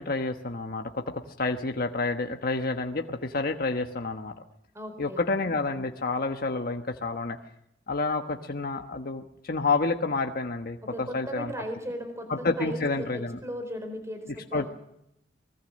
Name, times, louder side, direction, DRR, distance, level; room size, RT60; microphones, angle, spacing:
voice 1, 0.0-4.3 5.0-7.4 7.9-11.5 12.3-13.4 14.5-14.7, left 3 dB, 55° left, 4 dB, 1.2 m, -29 dB
voice 2, 4.7-5.2 10.9-14.7, equal, 15° right, 7 dB, 4.3 m, -37 dB
24.5 x 20.5 x 6.4 m, 0.80 s
head